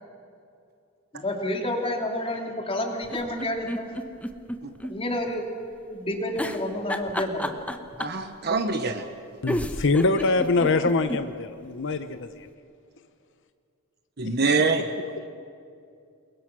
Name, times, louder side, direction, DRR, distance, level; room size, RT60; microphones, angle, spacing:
voice 1, 1.1-4.0 4.9-5.5 5.9-7.6, left 1 dB, 25° left, 2 dB, 3.0 m, -29 dB
sound 1, 3.0-4.9 5.3-5.4 6.4-8.2 9.1-9.2 9.5-11.2 11.6-11.7 11.9-12.0, left 1 dB, 5° left, 1.1 m, -31 dB
voice 2, 8.0-9.0 14.2-14.8, right 4 dB, 50° right, 7 dB, 1.2 m, -24 dB
voice 3, 9.4-12.5, left 3 dB, 60° left, 10 dB, 0.8 m, -24 dB
28.0 x 22.5 x 6.2 m, 2.4 s
head